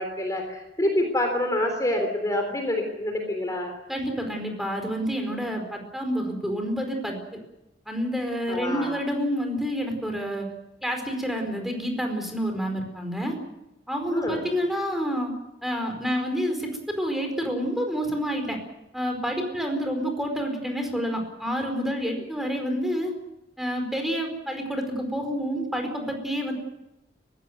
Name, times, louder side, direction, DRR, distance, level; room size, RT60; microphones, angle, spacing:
voice 1, 0.0-3.7 8.5-9.0 14.1-14.4, left 1 dB, 20° left, 3 dB, 3.6 m, -27 dB
voice 2, 3.9-7.4 7.9-10.5 10.8-13.3 13.9-15.3 15.6-18.6 18.9-23.1 23.6-26.5, equal, ahead, 3 dB, 4.7 m, -28 dB
23.0 x 16.0 x 9.4 m, 0.92 s
head